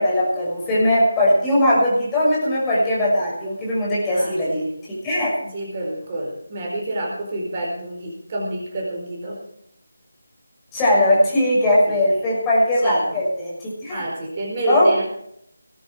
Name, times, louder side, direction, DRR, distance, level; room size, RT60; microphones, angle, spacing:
voice 1, 0.0-4.7 5.0-5.4 10.7-14.0 14.7-15.0, left 1 dB, 10° left, -6 dB, 6.3 m, -19 dB
voice 2, 4.1-4.7 5.4-9.4 11.9-12.0 12.8-13.2 13.9-15.0, right 1 dB, 30° right, -2 dB, 4.7 m, -28 dB
20.0 x 10.0 x 5.1 m, 0.71 s
figure-of-eight pair, 160°, 0 cm